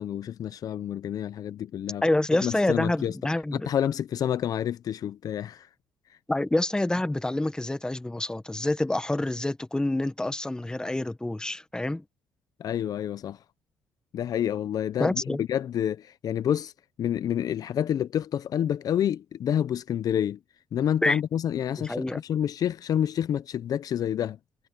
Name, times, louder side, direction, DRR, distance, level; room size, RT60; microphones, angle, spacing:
voice 1, 0.0-2.0 2.4-3.1 3.5-5.7 12.6-13.4 14.1-16.7 17.0-20.4 20.7-24.4, left 10 dB, 60° left, 0.7 m, -28 dB
voice 2, 2.0-3.7 6.3-12.0 15.0-15.4 21.0-21.2 21.8-22.2, left 1 dB, 10° left, 1.4 m, -27 dB
supercardioid pair, 80°, 7 cm